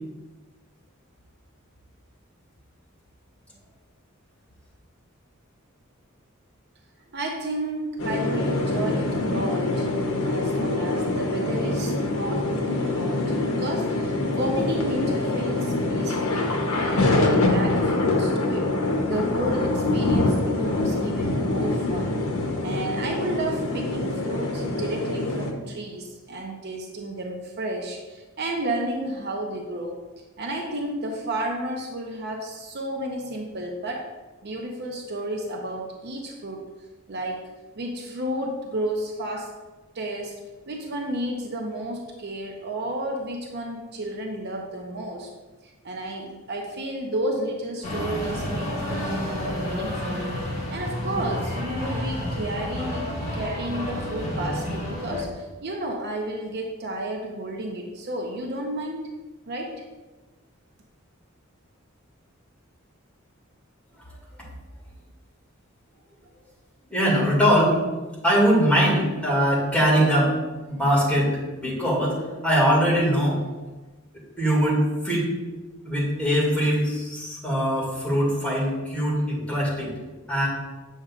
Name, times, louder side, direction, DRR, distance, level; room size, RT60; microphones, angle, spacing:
voice 1, 7.1-9.9 10.2-16.5 16.8-18.8 19.1-22.2 22.6-30.0 30.4-34.1 34.4-36.7 37.1-37.5 37.8-39.6 39.9-45.3 45.6-50.3 50.7-53.1 53.3-59.0 59.5-59.8, right 1 dB, 55° right, 1 dB, 0.7 m, -32 dB
sound 1, 8.0-25.5, left 2 dB, 85° left, 0.9 m, -25 dB
sound 2, 47.8-55.2, left 1 dB, 35° left, 1.7 m, -30 dB
voice 2, 66.9-67.8 68.2-70.4 70.7-72.2 72.4-73.4 74.4-75.3 75.9-79.9 80.3-80.5, equal, 5° left, -6 dB, 2.2 m, -22 dB
7.9 x 6.3 x 2.4 m, 1.2 s
head